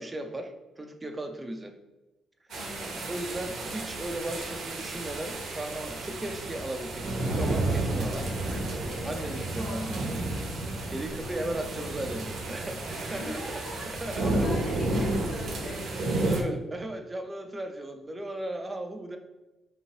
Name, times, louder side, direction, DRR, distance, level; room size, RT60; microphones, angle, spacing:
voice 1, 0.0-1.7 3.1-8.6 9.0-10.2 10.5-13.4 14.0-14.5 16.3-19.2, right 1 dB, 20° right, 5 dB, 0.5 m, -36 dB
voice 2, 2.5-3.1 8.9-10.0 10.7-11.0 13.0-16.6, equal, 60° left, -5 dB, 1.5 m, -42 dB
sound 1, 2.5-16.4, right 2 dB, 70° right, 0.7 m, -31 dB
3.6 x 3.0 x 2.8 m, 1.1 s
cardioid pair, 90°, 0 cm